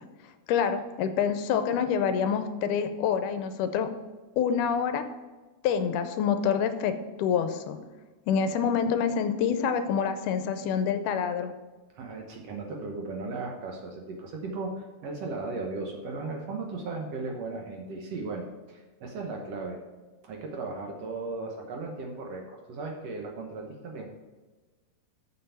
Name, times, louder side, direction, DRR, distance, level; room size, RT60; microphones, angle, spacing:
voice 1, 0.5-3.9 4.4-5.0 5.6-6.9 7.2-7.8 8.3-11.5, left 7 dB, 85° left, 9 dB, 2.1 m, -26 dB
voice 2, 12.0-19.8 20.2-24.1, right 3 dB, 65° right, 1 dB, 1.8 m, -36 dB
6.8 x 6.7 x 5.6 m, 1.3 s
omnidirectional pair, 3.7 m